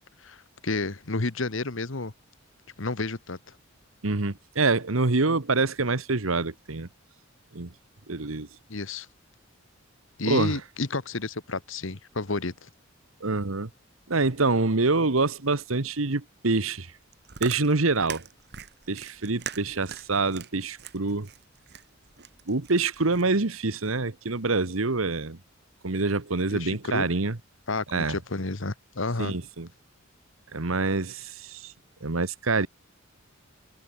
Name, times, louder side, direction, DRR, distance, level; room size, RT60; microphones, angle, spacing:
voice 1, 0.2-2.1 2.8-3.4 8.7-9.1 10.2-12.7 26.5-27.1 27.7-29.3, left 3 dB, 65° left, 1.4 m, -31 dB
voice 2, 4.0-6.9 7.5-7.7 8.1-8.5 10.2-10.6 13.2-13.7 14.1-16.9 17.4-18.3 18.9-21.3 22.5-25.4 25.8-27.4 27.9-28.2 29.2-29.7 30.5-31.7 32.0-32.7, right 3 dB, 80° right, 1.4 m, -26 dB
Chewing mastication, 17.0-23.4, right 8 dB, 55° right, 1.5 m, -42 dB
head